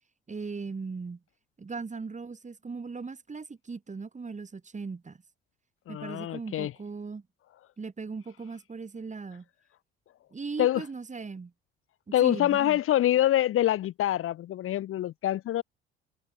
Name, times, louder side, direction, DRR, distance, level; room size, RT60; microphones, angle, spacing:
voice 1, 0.3-1.2 1.6-5.2 5.9-7.2 7.8-9.5 10.3-11.5 12.1-12.8, right 4 dB, 25° right, 7.5 m, -38 dB
voice 2, 5.9-6.7 10.6-10.8 12.1-15.6, left 13 dB, 45° left, 1.5 m, -25 dB
figure-of-eight pair, 55°, 29 cm